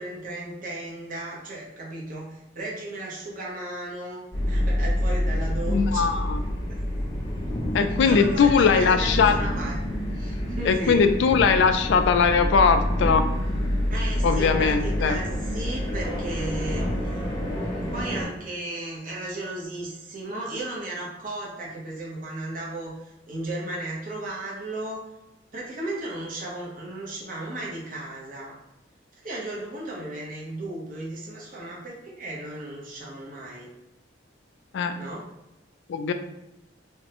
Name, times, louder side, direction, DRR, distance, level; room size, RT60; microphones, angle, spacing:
voice 1, 0.0-6.1 6.7-6.8 8.0-9.8 10.1-11.0 13.9-25.0 25.5-28.6 29.1-33.7 34.9-35.3, right 2 dB, 45° right, -4 dB, 0.8 m, -35 dB
sound 1, 4.3-18.2, left 1 dB, 20° left, 0.6 m, -27 dB
voice 2, 5.7-6.4 7.7-9.4 10.7-13.3 14.2-15.2 34.7-34.9 35.9-36.1, left 5 dB, 65° left, 9 dB, 0.3 m, -20 dB
3.3 x 2.1 x 2.8 m, 0.93 s
head